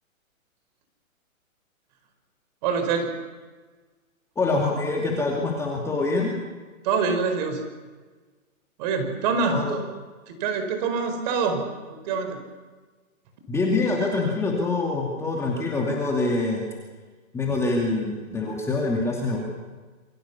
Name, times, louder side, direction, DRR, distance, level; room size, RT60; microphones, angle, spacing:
voice 1, 2.6-3.1 6.8-7.6 8.8-9.8 10.3-11.6 11.9-12.4, right 5 dB, 30° right, 7 dB, 4.7 m, -25 dB
voice 2, 4.4-6.3 9.5-9.7 13.5-16.6 17.3-19.4, left 3 dB, 5° left, -2 dB, 2.6 m, -25 dB
27.5 x 23.5 x 7.1 m, 1.4 s
hypercardioid pair, 155°, 41 cm